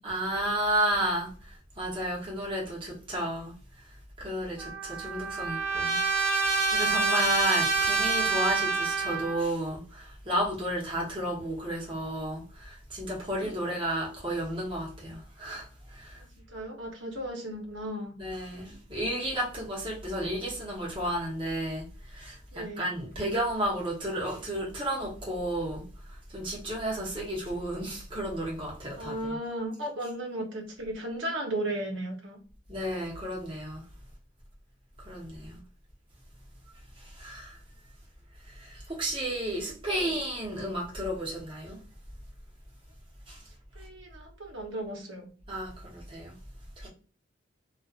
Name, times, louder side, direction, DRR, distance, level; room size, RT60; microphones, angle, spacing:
voice 1, 0.0-3.5 4.2-6.0 6.5-16.2 18.2-25.8 26.1-29.4 32.7-33.8 35.0-35.6 37.0-37.6 38.4-41.8 43.3-43.4 45.5-46.3 46.8-46.9, right 1 dB, 25° right, 0.9 m, -32 dB
Trumpet, 4.6-9.5, right 4 dB, ahead, 0.7 m, -27 dB
voice 2, 16.1-18.1 22.5-22.8 29.0-32.4 40.0-40.1 43.7-45.3, right 1 dB, 80° right, 0.9 m, -35 dB
2.4 x 2.4 x 2.4 m
head